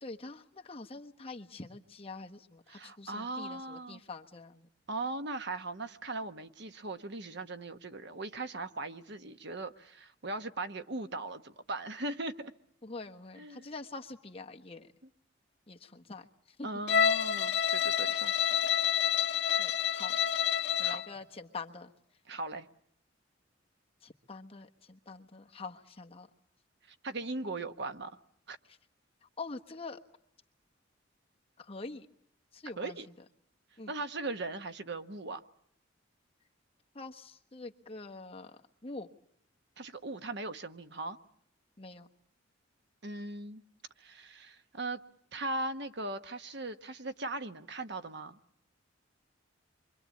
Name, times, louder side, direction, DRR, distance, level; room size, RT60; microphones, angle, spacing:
voice 1, 0.0-4.7 12.8-14.9 15.7-16.8 19.6-20.1 20.8-21.9 24.0-26.3 28.7-28.8 29.4-30.0 31.6-32.1 32.5-33.0 33.8-33.9 36.9-39.1 41.8-42.1, left 3 dB, 30° left, 3 dB, 1.2 m, -45 dB
voice 2, 2.7-4.0 4.9-12.5 13.4-13.7 16.6-18.4 19.4-19.9 20.8-21.0 22.3-22.7 27.0-28.2 28.5-28.6 32.8-33.1 33.9-35.4 39.8-41.2 43.0-43.6 44.0-45.0 45.3-48.4, right 2 dB, 60° right, 9 dB, 1.2 m, -39 dB
Bowed string instrument, 16.9-21.1, left 8 dB, 60° left, 1.4 m, -28 dB
27.5 x 24.5 x 8.4 m, 0.72 s
head